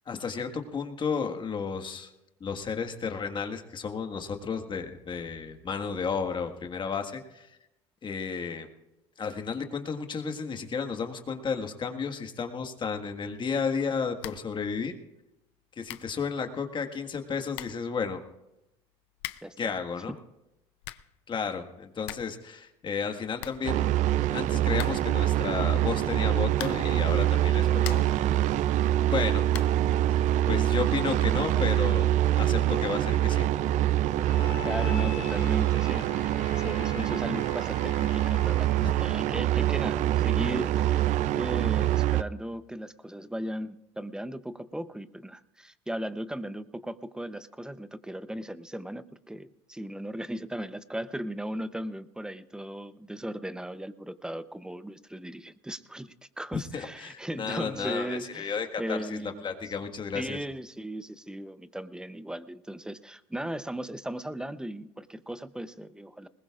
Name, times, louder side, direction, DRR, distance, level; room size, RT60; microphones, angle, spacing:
voice 1, 0.1-2.1 2.4-7.5 8.0-8.7 9.2-14.9 15.8-18.2 19.6-20.1 21.3-24.0 24.3-28.1 29.1-29.4 30.2-33.5 38.8-38.9 56.7-60.4, left 5 dB, 35° left, 5 dB, 1.7 m, -33 dB
sound 1, 14.2-14.6 14.8-14.9 15.5-15.6 15.8-16.2 17.1-17.2 17.5-17.9 19.1-19.6 20.6-21.2 21.5-21.6 21.8-22.4 22.7-22.8 23.0-23.1 23.4-24.2 24.7-25.2 26.5-27.0 27.5-28.2 29.5-29.9, left 16 dB, 90° left, 0.6 m, -41 dB
voice 2, 19.4-19.7 30.4-30.6 34.6-36.3 36.5-59.5 60.1-66.3, right 1 dB, 5° right, 13 dB, 0.7 m, -37 dB
sound 2, 23.6-42.2, right 13 dB, 60° right, 0.5 m, -25 dB
Bowed string instrument, 34.2-38.8, left 5 dB, 75° left, 1.9 m, -42 dB
20.5 x 20.0 x 2.5 m, 0.92 s
supercardioid pair, 90°, 14 cm